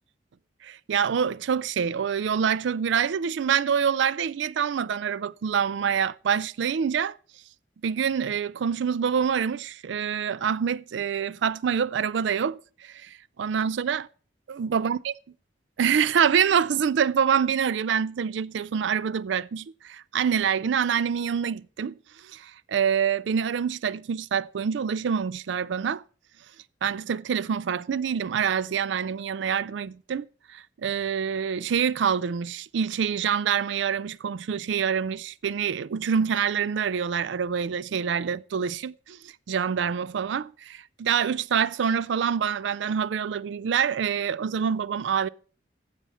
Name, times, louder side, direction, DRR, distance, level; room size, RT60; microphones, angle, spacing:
voice 1, 0.6-7.1 7.8-14.0 14.5-15.1 15.8-22.0 22.2-26.0 26.8-45.3, right 7 dB, 75° right, 0.4 m, -26 dB
13.5 x 7.5 x 4.2 m
head